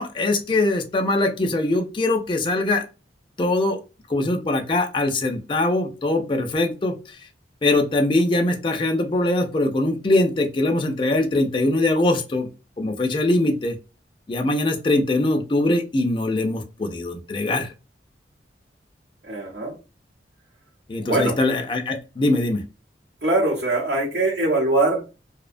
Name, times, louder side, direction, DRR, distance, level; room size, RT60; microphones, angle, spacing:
voice 1, 0.0-2.8 3.4-3.8 4.1-7.2 7.6-12.5 12.8-13.8 14.3-17.7 20.9-22.6, left 2 dB, 30° left, 4 dB, 0.4 m, -22 dB
voice 2, 19.3-19.7 21.0-21.3 23.2-25.1, right 2 dB, 70° right, -6 dB, 0.8 m, -22 dB
2.6 x 2.1 x 2.4 m, 0.31 s
head